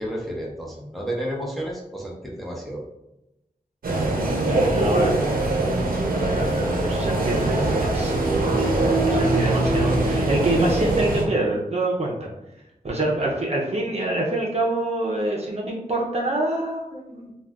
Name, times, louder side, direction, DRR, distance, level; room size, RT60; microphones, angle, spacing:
voice 1, 0.0-2.8 13.2-13.3, equal, ahead, -3 dB, 0.7 m, -31 dB
sound 1, 3.8-11.2, right 2 dB, 85° right, 0.6 m, -22 dB
voice 2, 4.5-5.2 6.1-12.3 12.8-17.3, right 1 dB, 45° right, -2 dB, 0.6 m, -26 dB
2.4 x 2.3 x 3.3 m, 0.90 s
wide cardioid pair, 65°, 15 cm